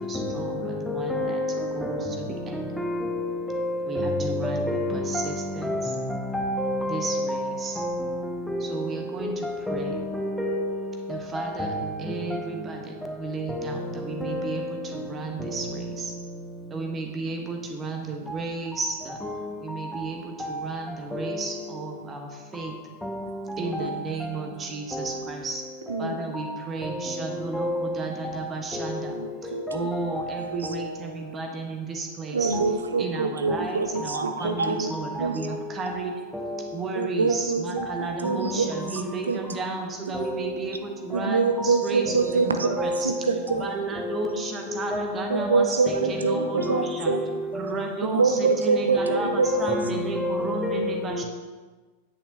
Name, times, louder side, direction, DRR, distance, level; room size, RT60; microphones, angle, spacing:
voice 1, 0.0-1.4 1.7-2.7 3.9-5.8 6.9-7.8 8.6-10.0 11.1-11.7 12.0-16.1 16.7-19.2 19.6-22.7 23.6-25.7 26.0-29.1 29.4-32.6 33.0-36.1 36.7-43.1 43.6-47.1 47.5-51.2, right 3 dB, 25° right, 1.1 m, -33 dB
voice 2, 0.9-1.5 2.6-5.2 5.6-5.9 6.3-7.4 7.8-8.1 8.5-8.6 9.7-9.9 10.2-10.7 11.6-11.8 14.3-14.4 27.5-27.8 29.7-29.8 32.5-32.7 42.8-43.1 44.9-45.1 47.1-47.2 49.2-51.0, left 1 dB, 5° left, 0.7 m, -28 dB
voice 3, 25.9-26.4 29.1-30.5 32.3-34.9 35.2-35.6 36.9-39.0 39.3-39.4 40.1-40.2 41.1-43.7 45.3-47.2 48.0-50.1, right 4 dB, 75° right, 0.6 m, -26 dB
9.1 x 8.2 x 2.8 m
figure-of-eight pair, 90°, 0 cm